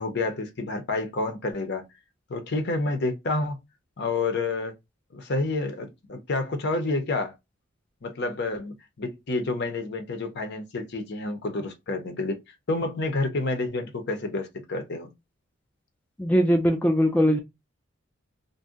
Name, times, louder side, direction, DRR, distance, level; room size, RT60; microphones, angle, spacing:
voice 1, 0.0-1.8 2.3-3.6 4.0-4.7 5.1-7.3 8.0-12.4 12.7-15.1, left 2 dB, 55° left, 0.7 m, -29 dB
voice 2, 16.2-17.4, equal, 10° left, 0.4 m, -20 dB
2.6 x 2.1 x 3.6 m
head